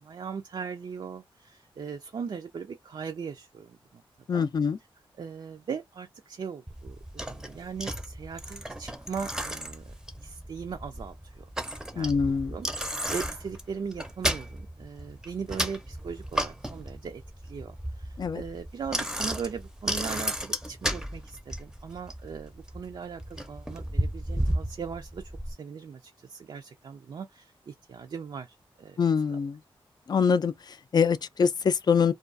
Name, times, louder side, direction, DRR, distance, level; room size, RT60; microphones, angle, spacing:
voice 1, 0.0-4.0 4.3-4.5 5.2-9.9 10.2-29.0 29.3-29.4, right 6 dB, 55° right, 0.4 m, -39 dB
voice 2, 4.3-4.8 12.0-12.6 18.2-18.4 29.0-29.6 30.1-32.1, left 6 dB, 45° left, 0.4 m, -24 dB
Bicycle, 6.7-25.5, equal, 5° right, 0.6 m, -34 dB
2.4 x 2.3 x 2.5 m
wide cardioid pair, 90°, 9 cm